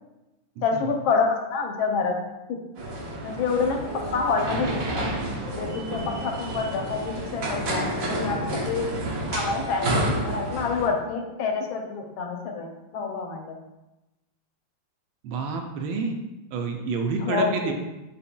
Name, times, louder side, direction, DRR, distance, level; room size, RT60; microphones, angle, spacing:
voice 1, 0.6-2.2 2.5-2.6 3.2-3.8 4.1-5.1 5.5-8.9 9.3-13.6 17.2-17.7, left 5 dB, 80° left, 3 dB, 1.4 m, -27 dB
sound 1, 2.8-10.9, right 1 dB, 60° right, 0.9 m, -30 dB
voice 2, 15.2-16.1 16.5-17.7, right 4 dB, 75° right, 3 dB, 1.3 m, -28 dB
6.9 x 3.2 x 2.2 m, 1.0 s
omnidirectional pair, 2.3 m